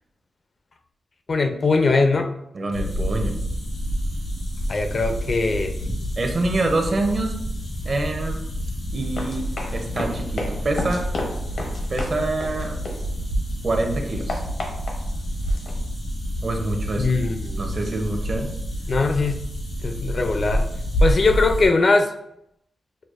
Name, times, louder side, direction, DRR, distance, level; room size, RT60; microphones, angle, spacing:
voice 1, 1.3-2.3 4.7-5.7 17.0-17.7 18.9-19.4 19.8-20.6 21.0-22.1, left 3 dB, 50° left, 5 dB, 0.4 m, -21 dB
voice 2, 2.5-3.4 6.2-7.3 7.8-8.4 8.9-9.5 9.7-11.1 11.9-12.8 13.6-14.4 16.4-17.2 17.6-18.5, right 2 dB, 50° right, 3 dB, 0.6 m, -26 dB
sound 1, 2.7-21.7, equal, 90° left, 1.4 m, -28 dB
Run, 9.0-13.5 13.8-15.7, left 2 dB, 75° left, 0.8 m, -33 dB
6.2 x 2.2 x 2.4 m, 0.77 s
wide cardioid pair, 110°, 0 cm